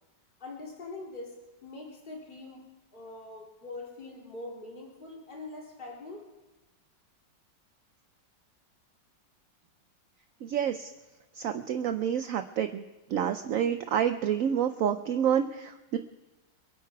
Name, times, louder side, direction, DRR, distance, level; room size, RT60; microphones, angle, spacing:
voice 1, 0.4-2.6 2.9-6.2, left 2 dB, 25° left, -2 dB, 2.6 m, -43 dB
voice 2, 10.4-10.9 11.4-12.8 13.1-16.0, right 9 dB, 70° right, 8 dB, 0.8 m, -28 dB
24.0 x 9.4 x 4.6 m, 1.1 s
omnidirectional pair, 2.0 m